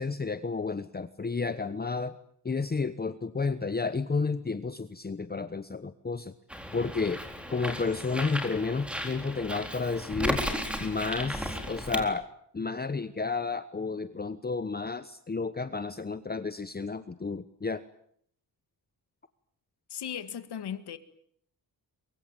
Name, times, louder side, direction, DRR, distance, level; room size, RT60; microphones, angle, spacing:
voice 1, 0.0-2.2 2.4-6.3 6.7-7.2 7.5-10.4 10.8-12.2 12.5-17.8, left 4 dB, 25° left, 1.0 m, -31 dB
Bird, 6.5-12.0, equal, 5° right, 4.0 m, -35 dB
voice 2, 19.9-21.0, left 9 dB, 80° left, 2.1 m, -37 dB
23.5 x 23.5 x 9.0 m
wide cardioid pair, 120°, 39 cm